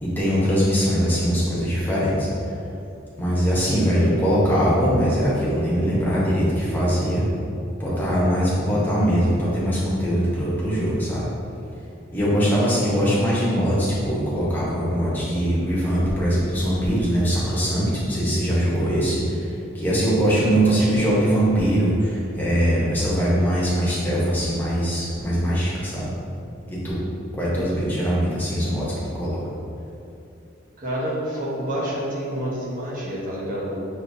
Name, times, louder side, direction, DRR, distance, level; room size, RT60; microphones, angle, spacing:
voice 1, 0.0-2.3 3.2-7.3 7.8-11.2 12.1-19.4 19.7-26.1 26.7-27.0 27.4-29.4, equal, 10° left, -8 dB, 0.9 m, -22 dB
voice 2, 20.3-21.2 27.4-27.7 30.8-33.9, equal, 40° right, -6 dB, 0.9 m, -29 dB
6.1 x 2.8 x 2.6 m, 2.7 s
head